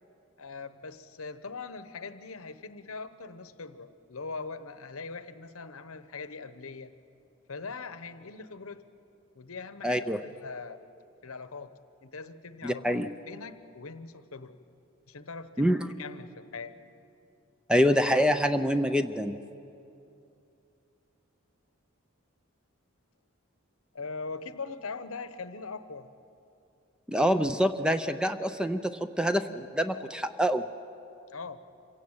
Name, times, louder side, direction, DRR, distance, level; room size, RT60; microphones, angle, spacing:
voice 1, 0.4-6.9 7.5-8.8 9.3-10.8 11.2-11.7 12.0-14.6 15.1-15.7 16.0-16.7 23.9-26.1 31.3-31.6, left 4 dB, 80° left, 12 dB, 1.0 m, -41 dB
voice 2, 9.8-10.2 12.6-13.1 15.6-15.9 17.7-19.4 27.1-30.6, equal, 5° right, 10 dB, 0.5 m, -26 dB
26.0 x 16.0 x 8.8 m, 2.7 s
head